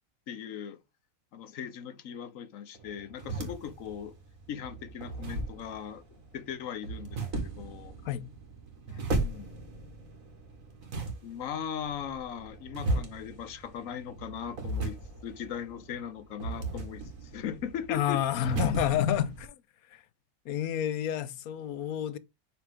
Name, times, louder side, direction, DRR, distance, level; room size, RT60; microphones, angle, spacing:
voice 1, 0.3-0.8 1.3-4.2 4.5-7.9 8.9-9.5 11.2-15.0 15.2-18.2 18.6-19.2, left 8 dB, 70° left, 1.1 m, -38 dB
sound 1, 2.7-19.5, right 2 dB, 70° right, 2.0 m, -37 dB
voice 2, 17.9-19.3 19.9-20.0 20.4-22.2, left 11 dB, 85° left, 1.1 m, -29 dB
5.8 x 5.0 x 3.5 m
omnidirectional pair, 1.5 m